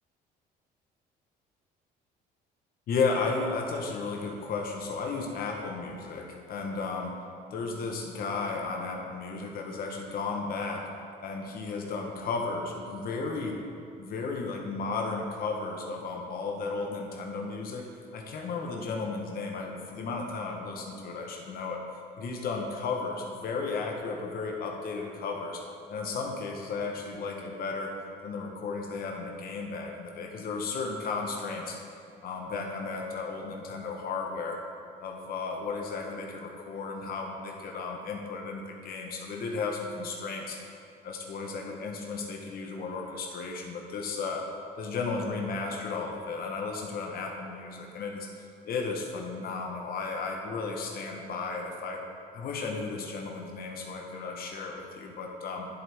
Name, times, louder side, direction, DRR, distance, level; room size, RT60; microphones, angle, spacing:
voice 1, 2.9-7.1 7.5-10.9 11.2-13.6 14.0-17.9 18.1-21.8 22.2-25.6 25.9-27.9 28.2-31.8 32.2-34.6 35.0-40.6 41.0-44.4 44.8-48.3 48.6-52.0 52.3-55.7, left 4 dB, 60° left, 1 dB, 1.1 m, -34 dB
11.0 x 7.6 x 3.5 m, 2.4 s
cardioid pair, 110°, 17 cm